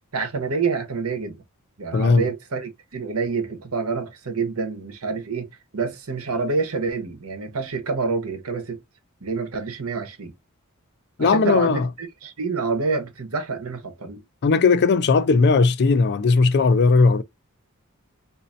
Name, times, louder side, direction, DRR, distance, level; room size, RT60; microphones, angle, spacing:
voice 1, 0.1-1.4 1.8-8.8 9.2-10.3 11.2-14.2, right 4 dB, 70° right, 1.1 m, -27 dB
voice 2, 1.9-2.3 11.2-11.9 14.4-17.2, left 4 dB, 50° left, 0.4 m, -17 dB
4.0 x 2.7 x 2.5 m
head